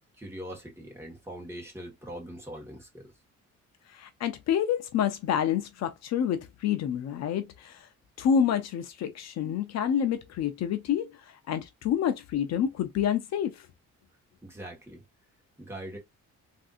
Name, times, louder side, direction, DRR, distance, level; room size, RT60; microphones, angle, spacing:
voice 1, 0.2-3.1 14.4-15.0 15.6-16.0, right 1 dB, 10° right, 1.3 m, -42 dB
voice 2, 3.9-7.9 8.2-13.7, left 8 dB, 65° left, 0.5 m, -28 dB
3.4 x 2.6 x 2.4 m
cardioid pair, 150°, 29 cm